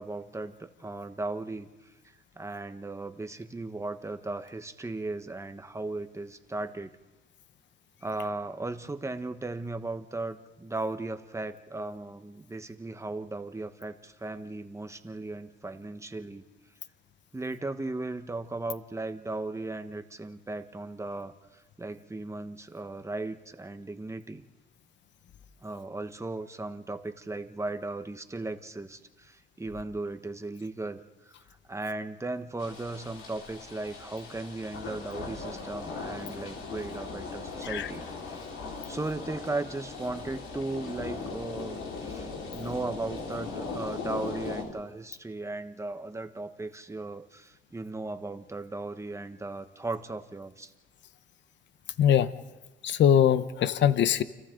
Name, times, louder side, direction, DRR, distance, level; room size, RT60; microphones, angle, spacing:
voice 1, 0.0-1.7 2.3-7.0 8.0-16.5 17.3-24.4 25.6-31.4 31.7-38.4 38.9-50.7, right 2 dB, 15° right, 8 dB, 1.3 m, -37 dB
sound 1, 32.6-44.6, left 4 dB, 85° left, 4.5 m, -39 dB
voice 2, 52.0-52.3 52.8-54.2, left 9 dB, 65° left, 13 dB, 0.9 m, -22 dB
30.0 x 26.5 x 3.9 m, 1.1 s
cardioid pair, 90°, 20 cm